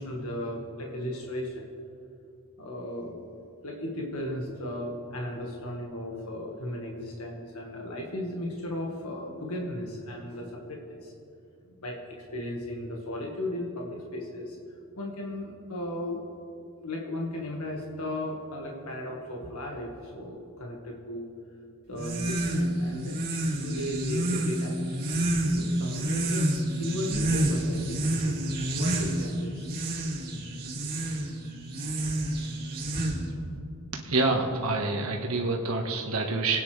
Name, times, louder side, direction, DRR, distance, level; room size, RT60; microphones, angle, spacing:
voice 1, 0.0-1.6 2.6-3.3 3.6-11.1 11.6-14.6 15.0-16.2 16.8-21.3 21.9-25.0 25.6-26.4 26.8-28.4 28.7-29.7 30.6-31.0, left 1 dB, 85° left, -1 dB, 1.8 m, -36 dB
sound 1, 21.9-33.5, right 1 dB, 45° right, 2.3 m, -29 dB
voice 2, 34.0-36.6, right 3 dB, 80° right, 1 dB, 1.5 m, -27 dB
26.5 x 9.5 x 3.4 m, 2.5 s
head